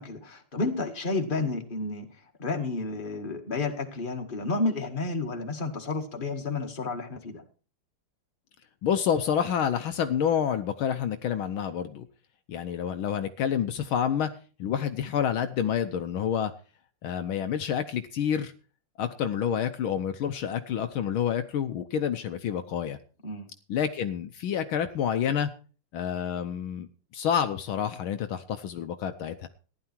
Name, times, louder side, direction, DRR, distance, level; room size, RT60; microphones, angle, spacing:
voice 1, 0.0-2.1 2.4-7.4 23.2-23.5, left 3 dB, 25° left, 3 dB, 2.0 m, -31 dB
voice 2, 8.8-12.1 12.5-14.3 14.6-16.5 17.0-18.5 19.0-23.0 23.7-25.5 25.9-26.9 27.1-29.5, left 8 dB, 75° left, 9 dB, 1.6 m, -28 dB
15.0 x 11.0 x 4.5 m, 0.38 s
omnidirectional pair, 2.4 m